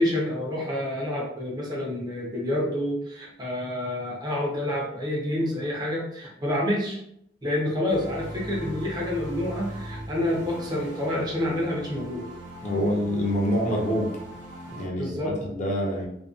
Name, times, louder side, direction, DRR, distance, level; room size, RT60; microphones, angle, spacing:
voice 1, 0.0-7.0 7.4-12.3 15.0-15.3, left 1 dB, 25° right, -3 dB, 0.6 m, -28 dB
sound 1, 7.9-14.9, right 1 dB, 85° right, 0.8 m, -39 dB
voice 2, 12.6-14.1 14.7-15.2 15.5-16.1, equal, 40° left, -2 dB, 0.6 m, -26 dB
2.5 x 2.2 x 2.4 m, 0.74 s
head